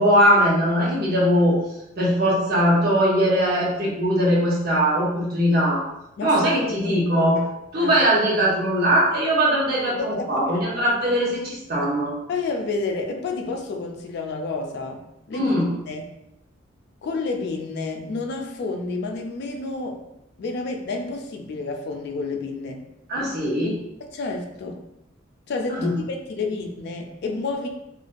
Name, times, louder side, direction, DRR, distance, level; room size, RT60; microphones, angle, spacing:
voice 1, 0.0-1.5 2.0-5.8 6.2-7.4 7.7-12.1 15.3-15.7 23.1-23.8 25.7-25.9, equal, 50° right, -5 dB, 0.7 m, -20 dB
voice 2, 6.2-7.0 7.8-8.0 10.0-10.5 12.3-15.6 15.9-16.1 17.0-20.0 20.4-22.8 24.1-24.8 25.5-27.7, left 3 dB, 55° left, 3 dB, 0.3 m, -30 dB
2.4 x 2.2 x 2.4 m, 0.84 s
head